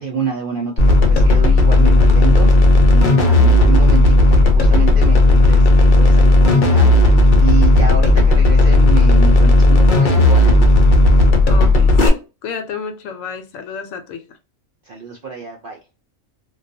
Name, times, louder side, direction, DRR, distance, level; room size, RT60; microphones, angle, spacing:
voice 1, 0.0-10.5 14.9-15.8, right 5 dB, 65° right, 0.5 m, -27 dB
sound 1, 0.8-12.1, left 2 dB, 55° left, 0.6 m, -12 dB
voice 2, 11.4-14.4, left 6 dB, 75° left, 1.0 m, -31 dB
2.3 x 2.3 x 2.5 m
omnidirectional pair, 1.4 m